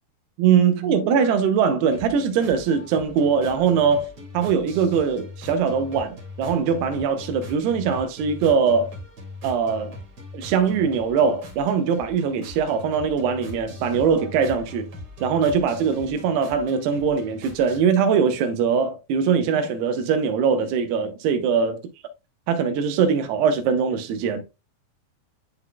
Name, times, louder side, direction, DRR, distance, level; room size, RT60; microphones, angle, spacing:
voice 1, 0.4-4.1 4.3-8.9 9.4-10.0 10.3-14.9 15.2-21.8 22.5-24.4, right 6 dB, 90° right, 3.0 m, -21 dB
sound 1, 1.8-17.8, left 1 dB, 40° right, 2.2 m, -41 dB
11.0 x 3.9 x 2.2 m
omnidirectional pair, 4.5 m